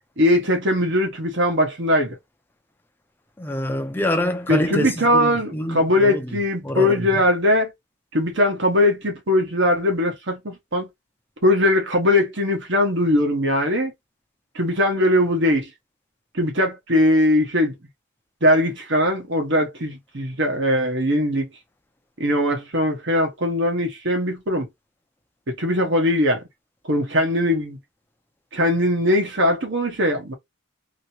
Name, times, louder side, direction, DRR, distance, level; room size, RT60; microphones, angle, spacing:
voice 1, 0.2-2.2 4.5-7.7 8.1-10.9 11.4-13.9 14.5-15.7 16.3-17.7 18.4-21.5 22.2-24.7 25.5-26.4 26.9-27.8 28.5-30.3, left 1 dB, 55° right, 1.1 m, -20 dB
voice 2, 3.4-6.4 6.6-7.1, left 1 dB, 10° left, 0.5 m, -26 dB
2.9 x 2.8 x 2.8 m
head